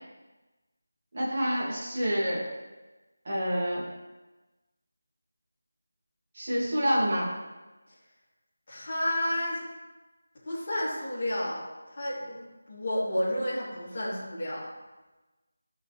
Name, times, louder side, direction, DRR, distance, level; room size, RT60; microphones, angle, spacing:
voice 1, 1.1-2.5 3.2-3.9 6.3-7.3, equal, 30° right, -6 dB, 2.4 m, -27 dB
voice 2, 8.7-9.6 10.4-11.6 11.9-12.4 12.7-14.7, left 1 dB, 30° left, -8 dB, 3.1 m, -31 dB
13.0 x 5.8 x 3.4 m, 1.1 s
figure-of-eight pair, 180°, 0 cm